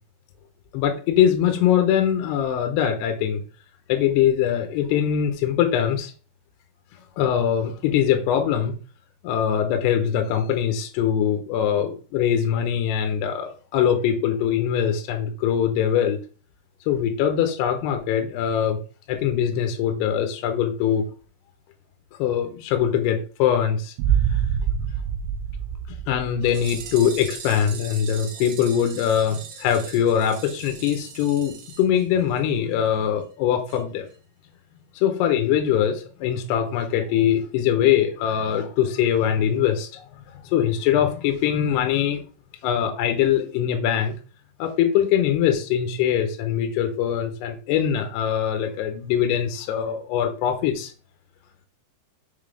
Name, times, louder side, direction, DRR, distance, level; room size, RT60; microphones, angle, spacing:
voice 1, 0.7-3.4 3.9-6.1 7.2-8.7 9.2-16.2 16.9-18.8 19.1-21.1 22.2-23.9 24.3-24.4 26.1-34.1 35.0-40.0 40.5-42.2 42.6-44.1 44.6-50.9, left 9 dB, 80° left, 6 dB, 2.9 m, -22 dB
sound 1, 24.0-27.0, right 9 dB, 90° right, 3.0 m, -25 dB
sound 2, 26.4-32.6 32.9-33.0 33.2-33.3 33.7-33.8 34.1-34.2, right 6 dB, 70° right, 3.0 m, -40 dB
6.7 x 3.6 x 5.0 m, 0.37 s
omnidirectional pair, 4.9 m